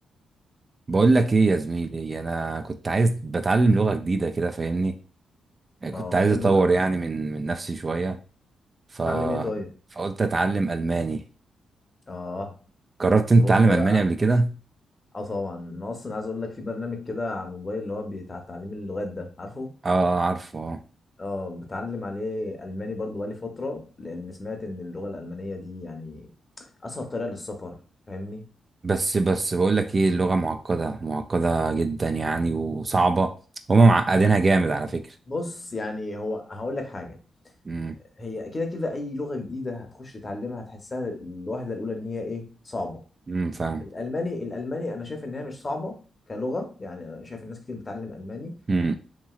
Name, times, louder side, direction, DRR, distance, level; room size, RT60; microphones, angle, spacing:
voice 1, 0.9-4.9 5.8-8.2 8.9-9.5 10.0-11.2 13.0-14.5 19.8-20.8 28.8-33.3 33.7-35.1 37.7-38.0 43.3-43.9 48.7-48.9, right 3 dB, 35° right, 8 dB, 0.3 m, -22 dB
voice 2, 5.9-6.6 9.1-9.7 12.1-12.6 13.3-14.0 15.1-19.7 21.2-26.3 26.8-28.5 35.3-37.2 38.2-43.0 43.8-46.0 46.3-48.7, left 2 dB, 30° left, 4 dB, 0.8 m, -33 dB
2.9 x 2.7 x 2.4 m, 0.37 s
cardioid pair, 70°, 0 cm